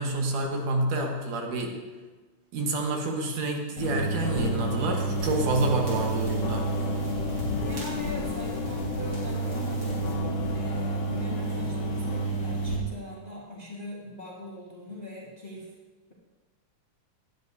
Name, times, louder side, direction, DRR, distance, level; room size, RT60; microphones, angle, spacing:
voice 1, 0.0-1.8 2.5-6.7, right 2 dB, 75° right, 2 dB, 2.8 m, -28 dB
sound 1, 3.8-12.8, right 1 dB, 50° left, 3.7 m, -30 dB
sound 2, 4.2-12.3, left 6 dB, 75° left, 2.2 m, -39 dB
sound 3, 5.1-10.1, right 5 dB, 40° right, 4.6 m, -42 dB
voice 2, 7.6-15.7, equal, 35° left, -5 dB, 1.1 m, -41 dB
17.5 x 10.5 x 2.7 m, 1.3 s
omnidirectional pair, 3.7 m